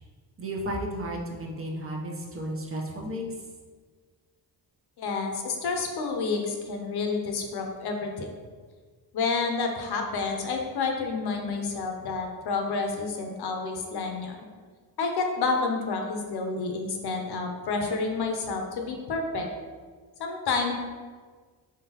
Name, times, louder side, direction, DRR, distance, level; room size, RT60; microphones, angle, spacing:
voice 1, 0.4-3.2, right 1 dB, 30° right, -1 dB, 0.7 m, -33 dB
voice 2, 5.0-8.3 9.1-14.5 15.0-19.5 20.2-20.7, left 4 dB, 60° left, 3 dB, 0.7 m, -29 dB
4.8 x 3.7 x 2.9 m, 1.5 s
cardioid pair, 115°, 43 cm